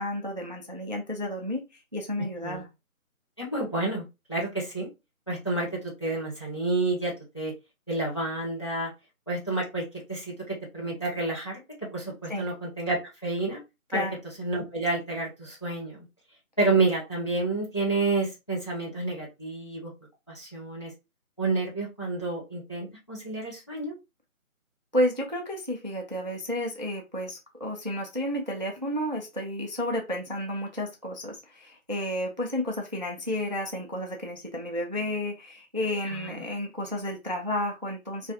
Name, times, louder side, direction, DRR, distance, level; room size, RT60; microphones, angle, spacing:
voice 1, 0.0-1.7 1.9-2.7 12.3-12.5 13.9-14.2 24.9-38.3, left 1 dB, 35° right, 1 dB, 0.4 m, -31 dB
voice 2, 3.4-4.9 5.3-7.5 7.9-8.9 9.3-11.6 11.9-13.6 13.9-14.0 14.4-16.0 16.6-19.9 20.3-20.9 21.4-23.9 36.1-36.3, right 3 dB, 20° left, -4 dB, 0.6 m, -29 dB
3.1 x 2.4 x 2.7 m, 0.24 s
figure-of-eight pair, 155°, 43 cm